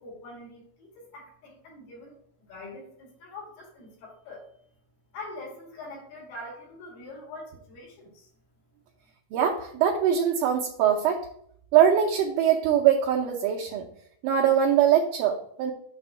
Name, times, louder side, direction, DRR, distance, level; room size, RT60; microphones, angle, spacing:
voice 1, 0.0-2.2 2.5-4.4 5.1-8.3, left 2 dB, 85° left, -5 dB, 4.2 m, -43 dB
voice 2, 9.3-11.2 11.7-13.8 14.2-15.7, right 9 dB, 75° right, 0 dB, 1.9 m, -22 dB
7.6 x 3.4 x 6.2 m, 0.66 s
omnidirectional pair, 4.3 m